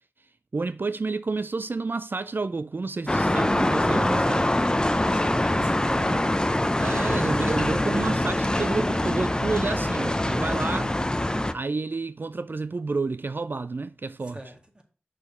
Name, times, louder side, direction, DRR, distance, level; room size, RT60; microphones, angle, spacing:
voice 1, 0.5-4.6 6.8-10.9 11.5-14.4, right 3 dB, 55° right, 0.3 m, -30 dB
sound 1, 3.1-11.5, left 1 dB, 20° left, 0.6 m, -24 dB
voice 2, 5.0-6.3 14.2-14.8, right 1 dB, 25° right, 2.0 m, -42 dB
6.2 x 4.9 x 5.4 m
cardioid pair, 40°, 4 cm